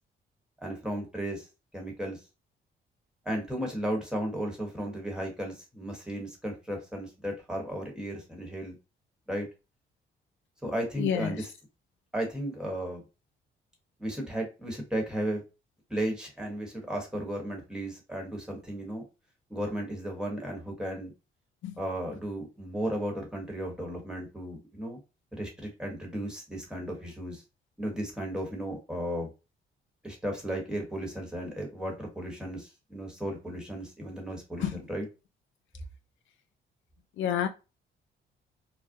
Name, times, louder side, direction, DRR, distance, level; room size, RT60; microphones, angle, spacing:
voice 1, 0.6-1.5 1.7-2.2 3.2-8.7 9.3-9.5 10.6-11.5 12.1-13.0 14.0-15.4 15.9-19.0 19.5-21.1 21.8-25.0 25.3-27.4 27.8-29.3 30.0-35.1, right 1 dB, 5° right, 1.1 m, -34 dB
voice 2, 11.0-11.4 21.6-21.7 34.6-34.7 37.2-37.5, left 9 dB, 80° left, 0.4 m, -28 dB
2.4 x 2.1 x 2.6 m
cardioid pair, 90°, 20 cm